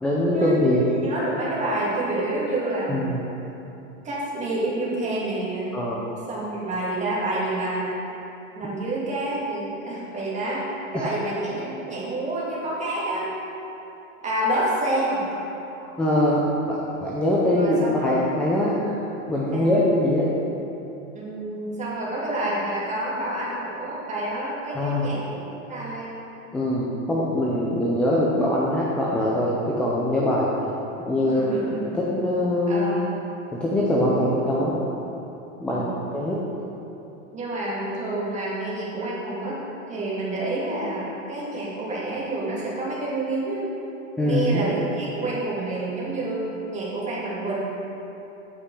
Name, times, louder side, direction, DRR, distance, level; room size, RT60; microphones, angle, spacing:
voice 1, 0.0-0.8 2.9-3.2 5.7-6.0 10.9-11.1 16.0-18.9 19.3-20.3 24.8-25.0 26.5-30.5 31.0-31.5 31.8-33.0 33.5-34.8 35.6-36.4 44.2-44.7, left 1 dB, 5° left, -6 dB, 0.4 m, -23 dB
voice 2, 1.0-3.2 4.0-5.8 6.3-8.0 8.5-10.6 10.9-13.3 14.2-15.3 15.7-15.9 17.4-18.2 19.5-19.8 21.1-25.4 25.7-26.1 31.3-32.0 32.7-33.1 35.7-36.0 37.3-39.6 39.9-43.7 44.2-47.6, right 2 dB, 15° right, -6 dB, 2.2 m, -28 dB
8.5 x 5.7 x 6.1 m, 2.9 s
supercardioid pair, 140°, 41 cm